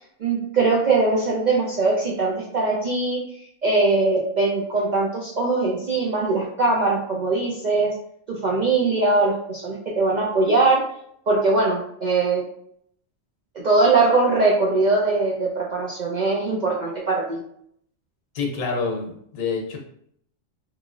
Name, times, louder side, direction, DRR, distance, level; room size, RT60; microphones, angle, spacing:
voice 1, 0.2-3.2 3.6-7.9 8.3-10.8 11.3-12.4 13.6-17.4, right 3 dB, 65° right, -4 dB, 0.4 m, -21 dB
voice 2, 18.3-19.8, left 4 dB, 80° left, 1 dB, 1.1 m, -27 dB
3.1 x 2.5 x 2.4 m, 0.69 s
omnidirectional pair, 1.3 m